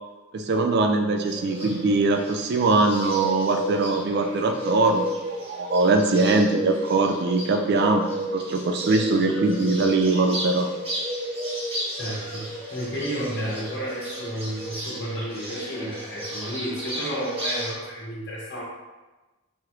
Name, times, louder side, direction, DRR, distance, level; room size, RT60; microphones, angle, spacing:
voice 1, 0.3-5.1 5.4-10.7, right 3 dB, 50° right, 5 dB, 0.3 m, -22 dB
Bird, 1.2-17.7, equal, 30° right, 1.0 m, -33 dB
voice 2, 11.9-18.6, equal, 55° left, -6 dB, 1.3 m, -32 dB
4.8 x 2.5 x 2.9 m, 1.1 s
head